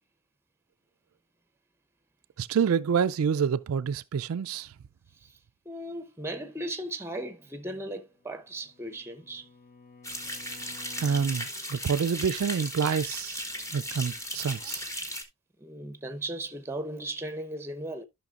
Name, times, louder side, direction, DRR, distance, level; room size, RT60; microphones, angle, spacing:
voice 1, 2.4-4.7 11.0-13.5 13.7-14.8, right 7 dB, 70° right, 0.4 m, -27 dB
voice 2, 5.7-9.5 15.6-18.0, right 1 dB, 10° right, 0.8 m, -37 dB
Bowed string instrument, 8.2-11.6, left 3 dB, 40° left, 1.1 m, -52 dB
sound 1, 10.0-15.2, equal, 15° left, 1.2 m, -36 dB
13.5 x 5.8 x 2.4 m
head